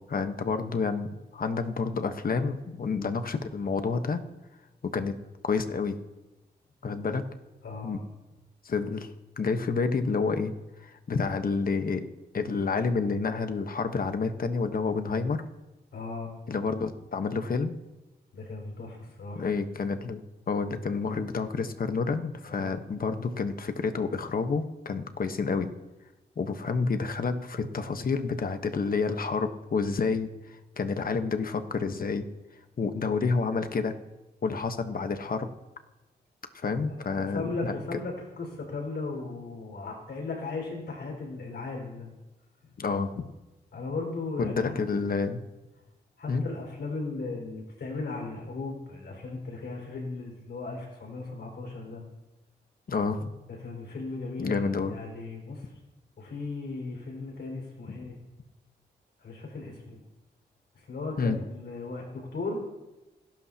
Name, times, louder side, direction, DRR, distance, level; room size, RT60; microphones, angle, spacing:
voice 1, 0.1-4.2 4.8-5.2 5.4-6.0 6.8-7.2 7.8-8.0 8.6-9.1 9.4-10.5 10.8-12.0 12.3-15.4 16.5-17.7 19.3-25.7 26.4-30.3 30.8-32.2 32.8-33.9 34.4-35.5 36.5-37.7 42.8-43.3 44.4-45.4 46.3-46.4 52.9-53.3 54.4-54.9 61.2-61.4, left 4 dB, 55° left, 8 dB, 1.2 m, -29 dB
voice 2, 7.6-8.0 15.9-16.3 18.3-19.4 22.4-22.7 36.9-42.1 43.7-44.7 46.2-52.0 53.6-55.7 56.2-58.2 59.2-60.0 60.7-62.6, left 3 dB, 75° left, 0 dB, 5.2 m, -37 dB
28.5 x 12.0 x 2.9 m, 1.1 s
cardioid pair, 75°, 18 cm